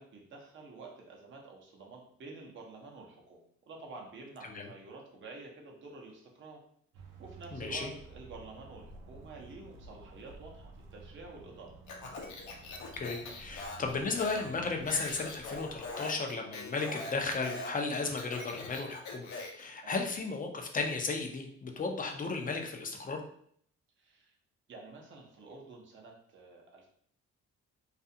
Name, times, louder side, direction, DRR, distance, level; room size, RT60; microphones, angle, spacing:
voice 1, 0.0-6.6 7.2-11.8 19.8-20.0 24.0-24.4 24.7-26.9, right 3 dB, 40° right, -1 dB, 0.7 m, -49 dB
sound 1, 6.9-15.9, right 3 dB, 80° right, 0.6 m, -53 dB
voice 2, 7.5-7.9 13.0-23.2, left 4 dB, 30° left, 3 dB, 0.5 m, -35 dB
Speech, 11.9-19.7, left 3 dB, 70° left, 0.7 m, -42 dB
2.4 x 2.3 x 2.7 m, 0.63 s
cardioid pair, 90°, 30 cm